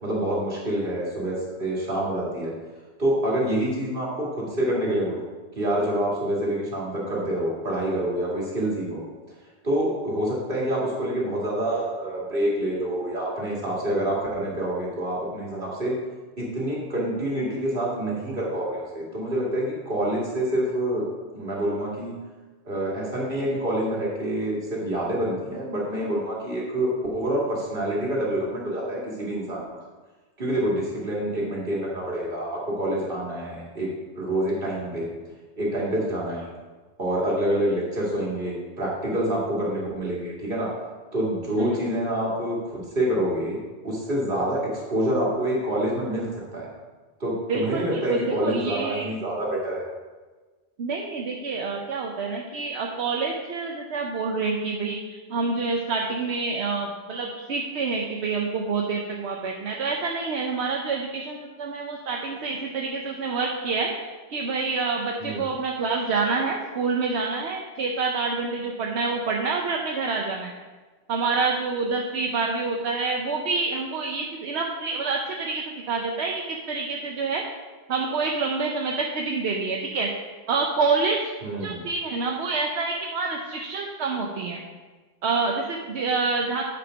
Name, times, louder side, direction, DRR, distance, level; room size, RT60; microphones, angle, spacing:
voice 1, 0.0-2.5 3.0-5.2 5.5-9.0 9.6-16.0 16.4-22.1 22.6-29.6 30.4-35.1 35.6-36.5 37.0-40.7 41.1-43.6 43.8-44.6 44.9-46.3 46.5-46.7 47.2-49.8 65.2-65.5 81.4-81.8, right 1 dB, 55° right, -5 dB, 2.4 m, -27 dB
voice 2, 47.5-49.1 50.8-70.5 71.1-77.4 77.9-80.1 80.5-81.3 81.6-84.6 85.2-86.6, right 4 dB, 80° right, 0 dB, 1.0 m, -27 dB
8.7 x 5.2 x 5.1 m, 1.3 s
omnidirectional pair, 1.1 m